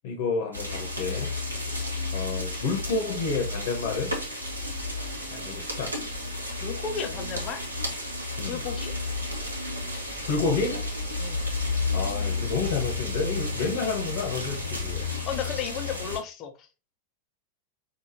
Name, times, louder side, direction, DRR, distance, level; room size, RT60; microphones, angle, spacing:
voice 1, 0.0-1.3 2.1-4.1 5.3-6.0 8.4-8.6 10.2-10.9 11.9-15.1, left 4 dB, 50° left, 1.1 m, -30 dB
sound 1, 0.5-16.2, left 2 dB, 75° right, 1.2 m, -32 dB
voice 2, 6.6-7.6 8.5-9.0 11.2-11.4 15.0-16.7, left 7 dB, 35° left, 0.8 m, -34 dB
5.0 x 2.6 x 2.8 m
figure-of-eight pair, 90°, 0 cm